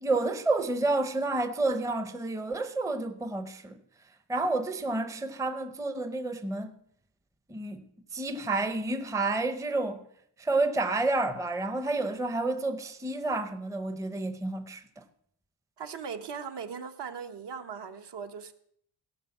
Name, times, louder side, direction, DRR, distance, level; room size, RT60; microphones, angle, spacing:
voice 1, 0.0-3.8 4.3-6.7 7.5-7.8 8.1-10.0 10.4-15.0, right 2 dB, 5° right, 0.6 m, -30 dB
voice 2, 15.8-18.5, right 6 dB, 60° right, 1.2 m, -39 dB
17.0 x 6.3 x 7.8 m
wide cardioid pair, 175°, 45 cm